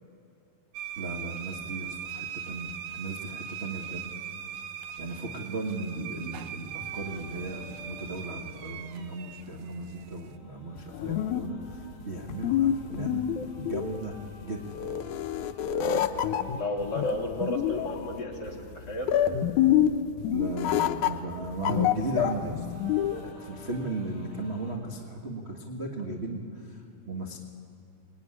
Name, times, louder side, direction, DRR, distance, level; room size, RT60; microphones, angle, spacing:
sound 1, 0.7-10.4, right 9 dB, 75° right, 2.1 m, -40 dB
voice 1, 1.0-4.0 5.0-13.2 13.6-14.1 14.4-15.0 20.3-22.6 23.2-27.4, right 2 dB, 30° right, 0 dB, 1.3 m, -36 dB
sound 2, 6.6-24.8, left 1 dB, 60° left, 5.0 m, -53 dB
sound 3, 10.8-23.3, left 10 dB, 80° left, 2.2 m, -27 dB
voice 2, 15.8-16.1 16.5-19.2, left 2 dB, 35° left, -2 dB, 3.3 m, -33 dB
24.5 x 20.5 x 9.8 m, 2.6 s
omnidirectional pair, 3.5 m